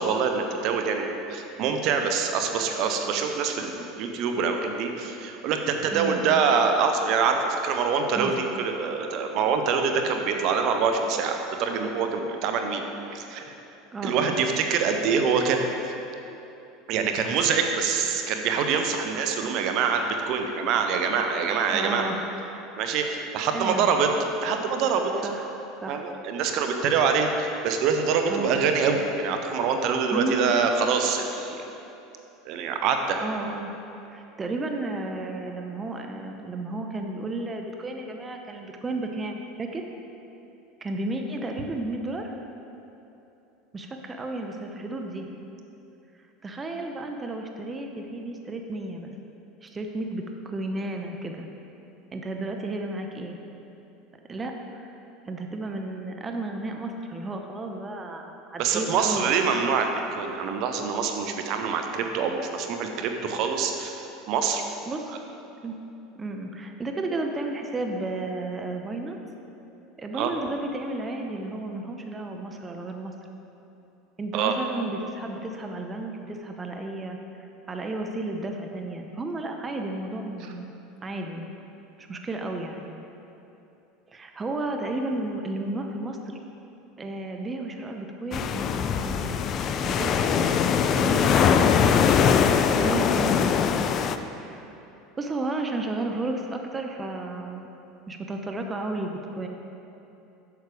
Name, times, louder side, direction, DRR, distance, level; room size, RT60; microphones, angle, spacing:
voice 1, 0.0-12.8 13.1-13.4 14.0-15.7 16.9-22.1 22.8-24.1 24.4-25.1 25.9-31.7 32.5-33.2 58.6-64.6 70.2-70.3 74.3-74.5, right 5 dB, 60° right, 5 dB, 0.9 m, -25 dB
voice 2, 5.9-6.4 8.1-8.3 13.9-14.4 21.7-22.3 22.7-23.0 23.5-23.9 25.2-25.5 25.8-26.1 26.5-26.6 28.3-28.7 30.1-30.5 33.2-33.7 34.1-39.8 40.8-42.3 43.7-45.3 46.4-49.1 49.6-51.5 52.1-53.4 54.3-55.0 55.2-59.6 64.9-65.2 65.6-65.7 66.2-69.2 70.0-73.1 74.2-80.7 81.0-81.5 82.0-82.9 84.1-86.4 87.0-89.5 89.8-91.8 92.7-94.0 94.4-94.7 95.2-97.7 98.1-99.5, right 2 dB, 25° right, 3 dB, 0.8 m, -33 dB
sound 1, 88.3-94.2, left 7 dB, 45° left, 0.4 m, -22 dB
8.3 x 6.5 x 4.9 m, 2.9 s
hypercardioid pair, 80°, 0 cm